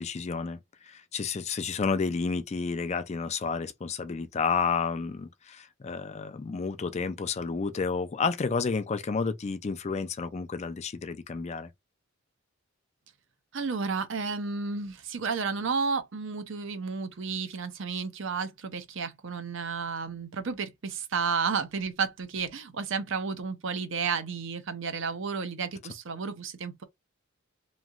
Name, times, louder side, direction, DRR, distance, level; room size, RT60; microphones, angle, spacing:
voice 1, 0.0-11.7, left 5 dB, 30° left, 0.4 m, -31 dB
voice 2, 13.5-26.8, right 5 dB, 65° right, 0.6 m, -32 dB
3.0 x 2.7 x 2.4 m
head